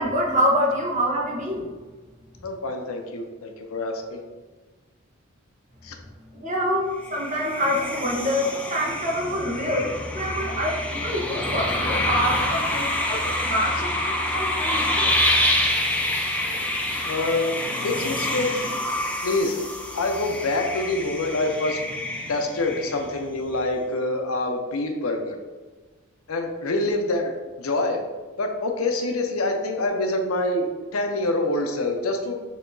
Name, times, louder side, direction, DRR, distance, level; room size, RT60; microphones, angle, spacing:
voice 1, 0.0-1.7 6.3-15.1, equal, 35° right, -3 dB, 1.0 m, -26 dB
voice 2, 2.4-4.2 5.8-5.9 17.0-17.5 17.8-18.5 19.2-19.6 19.9-21.8 22.3-25.4 26.3-27.3 27.6-28.0 28.4-32.4, left 2 dB, 85° left, 3 dB, 0.6 m, -26 dB
sound 1, 7.0-23.3, left 1 dB, 5° left, 0.5 m, -27 dB
6.5 x 2.9 x 2.6 m, 1.3 s
head